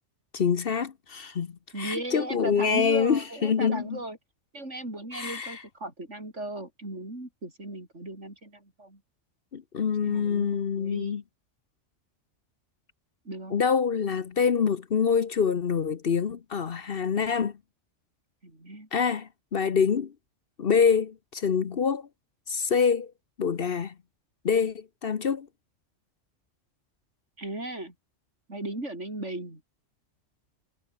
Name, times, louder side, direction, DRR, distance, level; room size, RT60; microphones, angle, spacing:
voice 1, 0.3-4.0 5.1-5.6 9.5-11.2 13.5-17.6 18.9-20.1 20.6-22.1 22.5-23.1 23.4-23.9 24.4-25.5, left 6 dB, 50° left, 1.1 m, -26 dB
voice 2, 1.7-4.2 4.5-9.0 10.0-11.2 13.3-13.6 18.4-18.9 27.4-27.9 28.5-29.6, right 1 dB, 70° right, 7.0 m, -37 dB
omnidirectional pair, 1.3 m